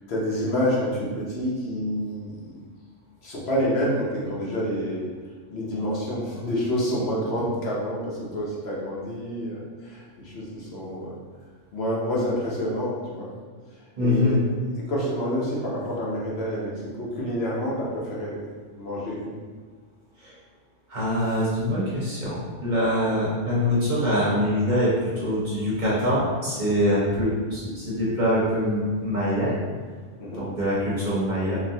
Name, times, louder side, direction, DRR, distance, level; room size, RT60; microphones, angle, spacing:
voice 1, 0.1-2.6 3.2-5.1 5.5-11.2 11.7-13.3 14.0-14.4 14.9-18.4 18.8-19.4 30.2-30.5, equal, 60° left, -5 dB, 0.9 m, -28 dB
voice 2, 14.0-14.4 20.2-20.4 20.9-29.5 30.4-31.6, equal, 45° right, -8 dB, 0.8 m, -24 dB
3.9 x 2.1 x 2.7 m, 1.5 s
omnidirectional pair, 1.3 m